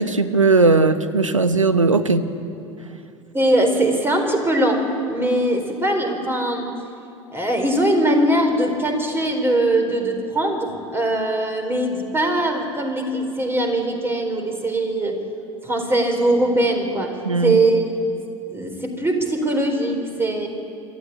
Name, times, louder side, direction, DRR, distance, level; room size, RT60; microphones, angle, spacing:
voice 1, 0.0-2.2 17.2-17.6, right 3 dB, 90° right, 12 dB, 1.0 m, -17 dB
voice 2, 3.3-4.8 5.1-6.7 7.3-15.2 15.6-17.1 17.4-18.2 18.5-20.5, right 1 dB, 15° right, 4 dB, 4.2 m, -21 dB
25.0 x 14.0 x 9.7 m, 2.6 s
figure-of-eight pair, 75°, 16 cm